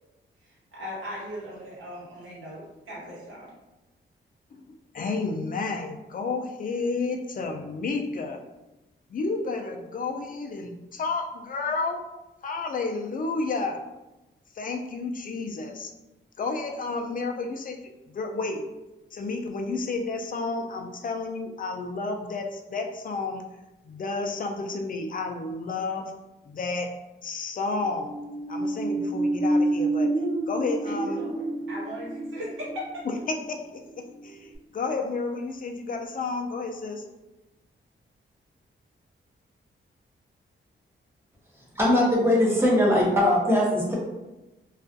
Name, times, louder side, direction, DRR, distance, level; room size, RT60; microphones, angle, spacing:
voice 1, 0.4-3.5 30.8-32.8, equal, 75° right, -7 dB, 1.2 m, -38 dB
voice 2, 4.5-8.4 9.1-12.0 12.4-13.8 14.6-15.9 16.4-18.7 19.1-23.4 23.9-26.1 26.5-26.9 27.2-28.1 28.5-30.1 30.5-31.2 33.5-37.0, left 3 dB, 45° left, 3 dB, 0.4 m, -31 dB
sound 1, 27.8-34.2 34.5-34.6, right 2 dB, 40° right, 0.6 m, -28 dB
voice 3, 41.7-43.9, left 1 dB, 10° right, -5 dB, 0.8 m, -21 dB
2.4 x 2.3 x 2.5 m, 1.0 s
wide cardioid pair, 100°, 20 cm